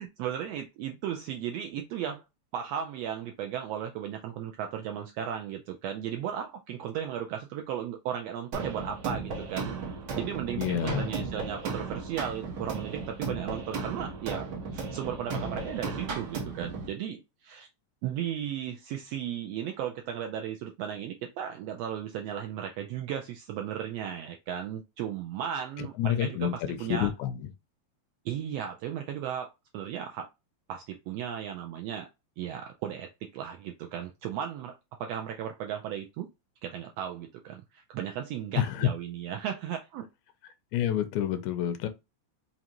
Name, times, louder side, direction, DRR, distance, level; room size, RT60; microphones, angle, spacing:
voice 1, 0.0-2.2 2.5-9.7 10.2-17.7 18.0-27.1 28.2-30.3 30.7-32.1 32.4-36.3 36.6-40.1, right 9 dB, 80° right, 1.5 m, -35 dB
sound 1, 8.5-16.9, right 4 dB, 60° right, 1.1 m, -35 dB
voice 2, 10.6-11.1 25.8-27.4 38.6-38.9 40.7-41.9, left 10 dB, 85° left, 1.9 m, -28 dB
5.2 x 2.5 x 2.9 m
omnidirectional pair, 3.3 m